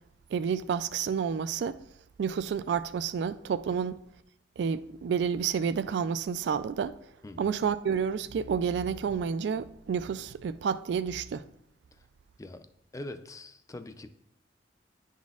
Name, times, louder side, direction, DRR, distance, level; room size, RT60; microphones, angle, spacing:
voice 1, 0.3-1.8 2.2-4.0 4.6-7.0 7.4-11.4, right 6 dB, 65° right, 0.3 m, -30 dB
voice 2, 7.2-7.5 12.4-12.7 12.9-14.1, left 1 dB, 20° left, 0.4 m, -42 dB
10.5 x 4.1 x 2.4 m
head